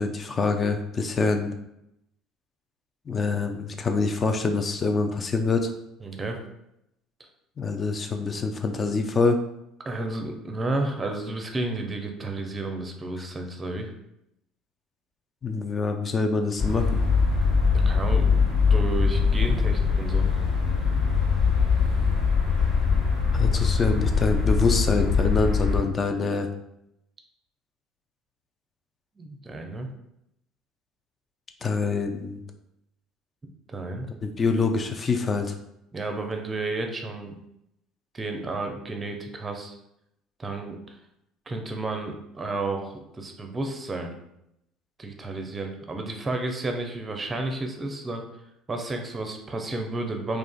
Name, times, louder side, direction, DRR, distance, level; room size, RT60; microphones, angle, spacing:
voice 1, 0.0-1.5 3.1-5.7 7.6-9.4 15.4-17.0 23.3-26.5 31.6-32.4 34.2-35.5, left 4 dB, 30° left, 5 dB, 0.4 m, -25 dB
voice 2, 6.0-6.4 9.8-13.9 17.7-20.3 29.2-29.9 33.7-34.1 35.9-37.4 38.1-39.7 40.4-40.8 41.5-44.2 45.0-48.2 48.7-50.4, right 2 dB, 25° right, 4 dB, 0.5 m, -32 dB
sound 1, 16.6-25.8, left 5 dB, 50° left, 1.2 m, -22 dB
3.7 x 2.4 x 2.3 m, 0.81 s
figure-of-eight pair, 60°, 0 cm